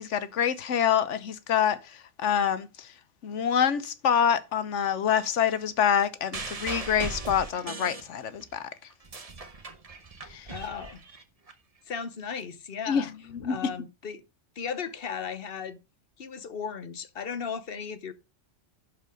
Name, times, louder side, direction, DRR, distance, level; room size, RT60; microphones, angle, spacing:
voice 1, 0.0-1.8 2.2-2.7 3.2-8.6 10.3-10.4 12.9-13.6, left 8 dB, 80° left, 1.2 m, -26 dB
sound 1, 6.3-8.5 8.9-11.5 12.4-12.5, right 3 dB, 30° right, 1.1 m, -38 dB
voice 2, 10.5-11.0 11.9-13.1 13.5-14.2 14.6-15.8 16.2-18.1, left 6 dB, 55° left, 1.0 m, -36 dB
11.5 x 4.8 x 5.1 m
omnidirectional pair, 1.2 m